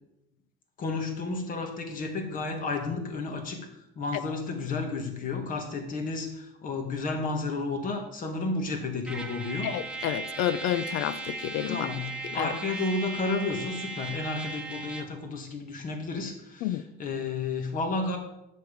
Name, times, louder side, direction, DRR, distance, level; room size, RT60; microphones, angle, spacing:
voice 1, 0.8-3.7 3.9-9.7 11.7-18.2, left 3 dB, 45° left, 4 dB, 1.7 m, -32 dB
Trumpet, 9.1-15.2, right 3 dB, 5° right, 0.8 m, -37 dB
voice 2, 9.6-11.9 12.2-12.5 16.6-16.8, left 11 dB, 80° left, 15 dB, 0.6 m, -30 dB
9.4 x 6.6 x 5.2 m, 0.88 s
cardioid pair, 155°, 20 cm